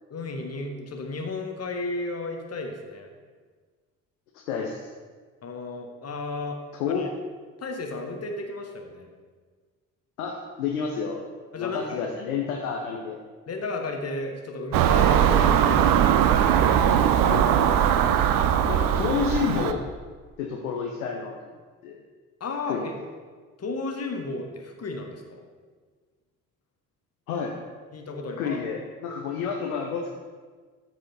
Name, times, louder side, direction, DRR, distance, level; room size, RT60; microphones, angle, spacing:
voice 1, 0.1-3.1 5.4-6.6 6.9-7.1 7.6-9.1 11.5-12.0 13.5-16.3 22.4-22.9 23.6-25.4 27.9-28.6, left 2 dB, 35° left, 3 dB, 1.3 m, -33 dB
voice 2, 4.5-4.9 6.7-7.1 10.2-11.2 11.6-13.2 17.2-17.5 18.7-19.8 20.4-21.5 21.8-22.0 22.7-22.9 27.3-27.5 28.4-30.1, left 6 dB, 75° left, 0 dB, 0.9 m, -29 dB
Car passing by / Engine, 14.7-19.7, right 9 dB, 50° right, 0.6 m, -20 dB
13.0 x 4.8 x 4.2 m, 1.5 s
figure-of-eight pair, 45°, 44 cm